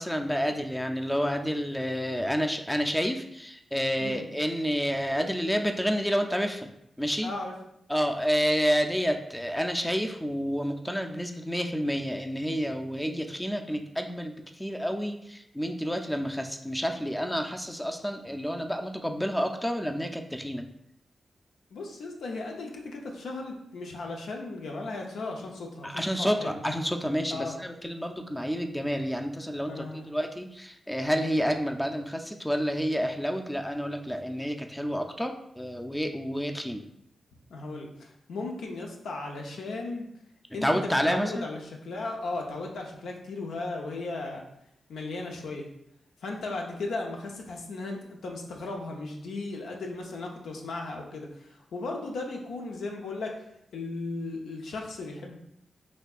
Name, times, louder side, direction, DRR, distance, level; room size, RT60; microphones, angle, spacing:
voice 1, 0.0-6.7 7.0-7.3 7.9-20.7 25.8-36.8 40.6-41.5, equal, 5° left, 5 dB, 0.4 m, -29 dB
voice 2, 7.2-7.5 21.7-26.6 27.3-27.6 29.6-30.1 37.5-40.1 40.5-44.4 44.9-45.7 46.2-53.4 53.7-55.4, left 3 dB, 85° left, 1 dB, 0.5 m, -36 dB
4.1 x 2.8 x 2.4 m, 0.78 s
cardioid pair, 50°, 0 cm